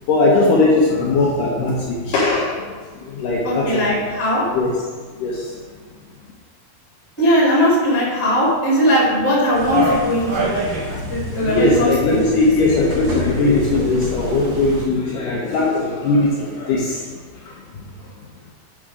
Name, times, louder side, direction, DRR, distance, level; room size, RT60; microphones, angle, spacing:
voice 1, 0.0-4.1 4.5-4.7 5.1-5.6 11.4-18.1, left 2 dB, 75° left, -3 dB, 2.2 m, -19 dB
voice 2, 3.4-4.4 7.2-12.2, equal, 5° left, -6 dB, 1.4 m, -19 dB
sound 1, 9.5-14.9, right 1 dB, 80° right, 1.1 m, -26 dB
7.3 x 4.9 x 4.8 m, 1.4 s
omnidirectional pair, 4.4 m